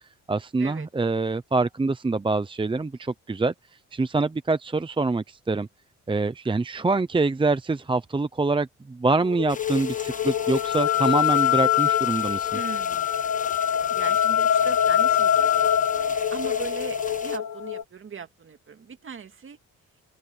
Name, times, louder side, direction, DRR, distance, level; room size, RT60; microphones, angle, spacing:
voice 1, 0.3-3.5 3.9-5.7 6.1-12.5, right 3 dB, 15° right, 0.8 m, -25 dB
sound 1, 9.2-17.8, left 10 dB, 65° left, 1.8 m, -24 dB
sound 2, 9.5-17.4, left 4 dB, 25° left, 1.4 m, -40 dB
voice 2, 12.5-13.1 13.9-19.6, right 6 dB, 45° right, 2.3 m, -39 dB
open air
cardioid pair, 90°, 30 cm